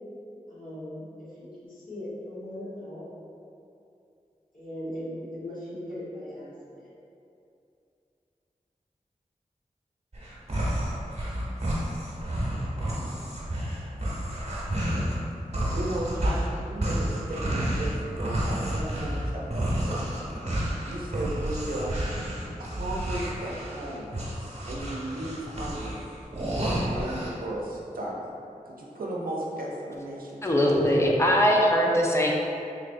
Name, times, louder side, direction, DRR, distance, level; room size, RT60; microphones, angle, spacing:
voice 1, 0.5-3.0 4.5-6.5 6.8-6.9, left 1 dB, 70° left, -11 dB, 1.4 m, -38 dB
sound 1, 10.1-15.2 15.5-27.3, right 1 dB, 50° right, 1.0 m, -30 dB
voice 2, 15.7-20.1 20.8-22.0 22.6-24.1 24.7-26.0 26.4-28.3 28.7-30.8, right 1 dB, 90° right, -3 dB, 0.5 m, -35 dB
voice 3, 30.4-32.3, equal, 20° left, -1 dB, 0.5 m, -21 dB
3.7 x 3.2 x 2.5 m, 2.6 s
wide cardioid pair, 50°, 15 cm